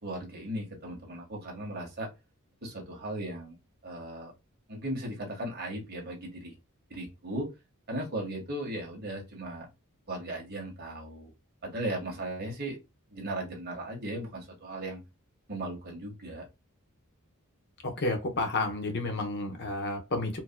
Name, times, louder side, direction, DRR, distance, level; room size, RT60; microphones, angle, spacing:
voice 1, 0.0-2.1 2.6-3.6 3.8-4.3 4.7-6.5 6.9-7.5 7.9-9.7 10.1-11.3 11.6-12.8 13.1-15.0 15.5-16.5, right 1 dB, 50° right, 1.5 m, -37 dB
voice 2, 17.8-20.4, left 2 dB, 50° left, 1.0 m, -31 dB
4.4 x 2.9 x 2.2 m
head